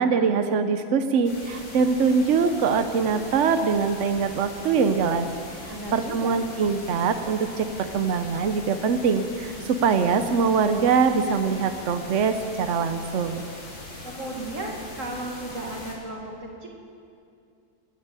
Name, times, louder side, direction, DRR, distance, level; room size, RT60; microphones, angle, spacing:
voice 1, 0.0-5.3 5.6-13.4, right 5 dB, 70° right, 8 dB, 0.7 m, -23 dB
sound 1, 1.2-16.0, left 2 dB, 75° left, 3.6 m, -41 dB
voice 2, 5.7-6.4 14.0-16.7, right 1 dB, 40° right, 0 dB, 2.4 m, -35 dB
20.0 x 8.1 x 9.0 m, 2.4 s
omnidirectional pair, 2.1 m